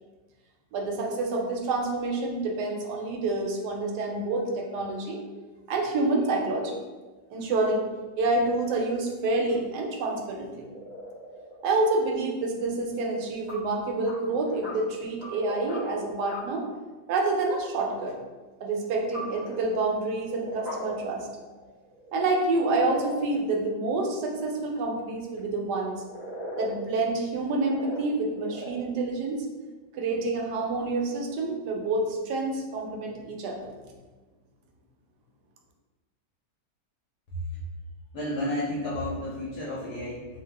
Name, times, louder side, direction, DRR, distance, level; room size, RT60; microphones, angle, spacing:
voice 1, 0.7-5.2 5.7-6.8 7.3-7.9 8.2-10.7 11.6-16.7 17.1-18.2 18.6-21.3 22.1-25.9 26.6-29.5 29.9-33.7, right 2 dB, 75° right, 1 dB, 1.1 m, -28 dB
sound 1, 9.5-9.6 10.6-11.7 13.5-13.6 13.8-14.8 15.1-15.9 16.3-16.4 18.8-19.8 20.2-21.0 21.4-23.2 25.4-25.5 25.9-26.8 27.3-28.0 28.3-28.8, equal, 35° right, 0.7 m, -38 dB
voice 2, 38.1-40.3, left 1 dB, 70° left, -7 dB, 1.1 m, -31 dB
2.6 x 2.3 x 3.3 m, 1.3 s
omnidirectional pair, 1.9 m